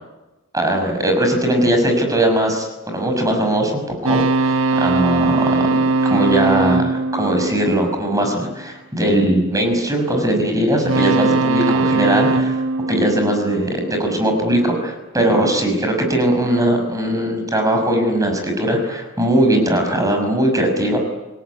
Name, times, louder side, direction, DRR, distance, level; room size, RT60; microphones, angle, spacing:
voice 1, 0.5-12.6 12.9-21.0, right 1 dB, 15° right, 4 dB, 6.1 m, -19 dB
sound 1, 4.0-8.4 10.8-14.1, right 3 dB, 65° right, 1.2 m, -20 dB
28.5 x 18.5 x 9.5 m, 1.1 s
head